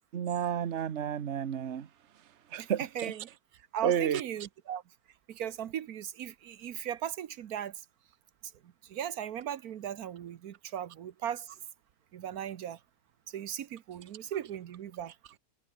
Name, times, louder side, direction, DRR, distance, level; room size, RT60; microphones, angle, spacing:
voice 1, 0.1-1.9 2.5-3.1 3.8-4.2, right 9 dB, 50° right, 1.3 m, -31 dB
voice 2, 2.6-3.3 3.7-4.8 5.3-7.7 8.9-11.5 12.1-12.8 13.3-15.1, right 10 dB, 80° right, 1.4 m, -37 dB
omnidirectional pair, 1.6 m